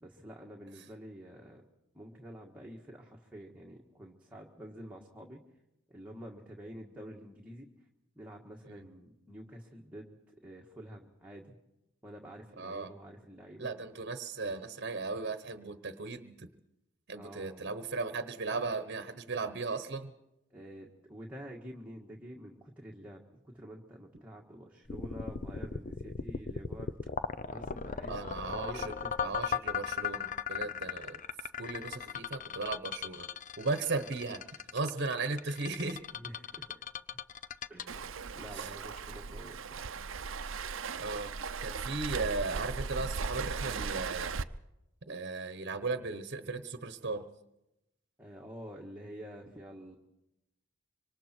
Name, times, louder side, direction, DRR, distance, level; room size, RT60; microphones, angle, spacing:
voice 1, 0.0-1.6 1.9-5.4 5.9-7.7 8.2-10.2 10.4-11.6 12.0-13.7 17.2-17.6 20.5-26.9 27.5-28.2 28.4-29.4 36.1-36.7 37.1-37.2 37.7-38.1 38.3-39.9 48.2-50.0, equal, 5° right, -2 dB, 1.7 m, -48 dB
voice 2, 12.6-12.9 13.6-16.5 17.1-20.1 28.1-31.2 31.6-33.3 33.6-34.4 34.7-36.0 38.5-38.7 41.0-41.3 41.6-44.3 45.0-47.3, right 3 dB, 55° right, 10 dB, 1.1 m, -36 dB
sound 1, 24.9-39.0, left 6 dB, 40° left, 0.6 m, -37 dB
Waves surf, 37.9-44.4, right 5 dB, 75° right, 0.7 m, -38 dB
26.0 x 25.0 x 4.5 m, 0.91 s
head